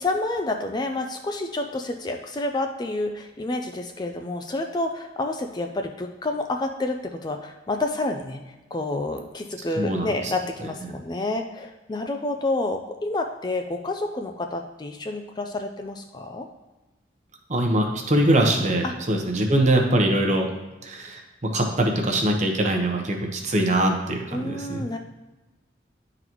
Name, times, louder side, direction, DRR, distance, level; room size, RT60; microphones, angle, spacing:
voice 1, 0.0-16.5 18.8-18.9 24.3-25.0, left 2 dB, 20° left, 4 dB, 0.3 m, -29 dB
voice 2, 9.8-10.1 17.5-20.5 20.8-21.2 21.5-24.9, right 1 dB, 40° right, 2 dB, 0.9 m, -22 dB
10.5 x 3.9 x 3.0 m, 1.1 s
head